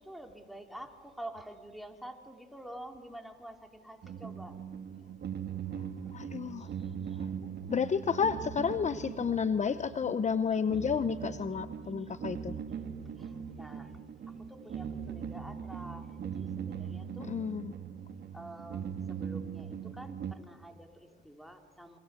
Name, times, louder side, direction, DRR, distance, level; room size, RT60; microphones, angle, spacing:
voice 1, 0.0-4.6 6.6-7.3 12.0-12.1 13.2-13.9 14.3-17.4 18.3-22.0, right 1 dB, ahead, 4 dB, 3.4 m, -48 dB
sound 1, 4.0-20.3, right 7 dB, 55° right, 1.9 m, -40 dB
voice 2, 6.1-6.7 7.2-7.3 7.7-12.5 17.2-17.7, left 6 dB, 35° left, 12 dB, 0.9 m, -31 dB
29.0 x 24.5 x 8.3 m, 1.5 s
cardioid pair, 90°, 20 cm